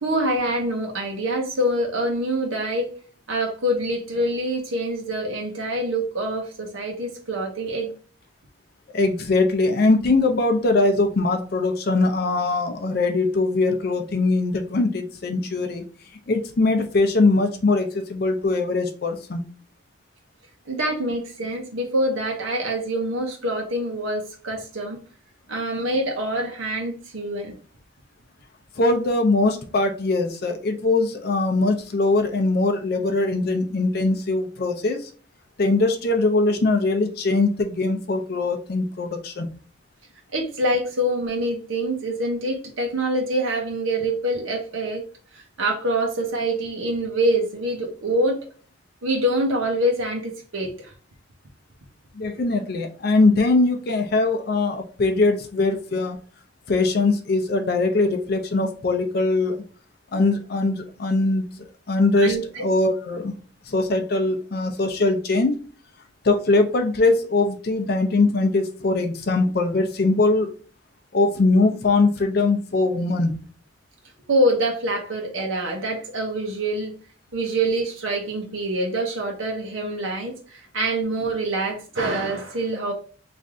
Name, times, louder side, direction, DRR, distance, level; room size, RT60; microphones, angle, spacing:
voice 1, 0.0-2.9 3.3-7.9 20.7-25.0 25.5-27.5 40.3-45.0 45.3-48.4 49.0-50.9 62.2-62.7 74.3-76.9 77.3-82.9, right 1 dB, 90° right, 1 dB, 0.8 m, -25 dB
voice 2, 8.9-15.8 16.3-19.4 28.7-35.1 35.6-39.5 52.2-56.2 56.7-59.6 60.1-63.3 63.7-65.5 66.2-70.5 71.1-73.4, left 3 dB, 50° left, 6 dB, 0.5 m, -21 dB
3.2 x 2.6 x 3.5 m, 0.40 s
head